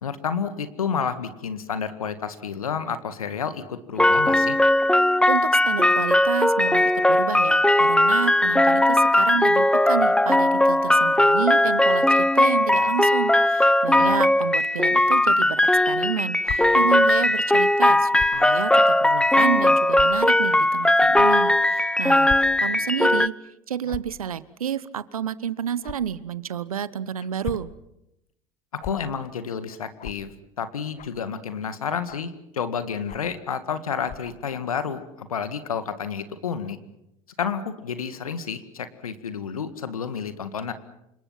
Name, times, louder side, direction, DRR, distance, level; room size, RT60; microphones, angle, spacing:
voice 1, 0.0-4.6 13.9-14.2 28.7-30.3 30.6-36.8 37.4-40.7, left 6 dB, 85° left, 11 dB, 1.9 m, -30 dB
sound 1, 4.0-23.3, left 1 dB, 5° left, 0.8 m, -19 dB
voice 2, 5.3-23.3 23.7-27.7, right 8 dB, 90° right, 18 dB, 1.0 m, -30 dB
sound 2, 16.4-16.6 18.1-18.4 19.1-19.2 19.9-20.1 21.1-21.2 22.2-22.4 22.7-22.9 23.8-24.1 25.8-26.0 27.2-27.7 28.8-28.9 30.0-30.2 31.0-31.2 32.1-32.3 33.1-33.3 34.0-34.3, left 9 dB, 45° left, 1.6 m, -36 dB
29.0 x 26.0 x 5.8 m, 0.84 s
hypercardioid pair, 70°, 18 cm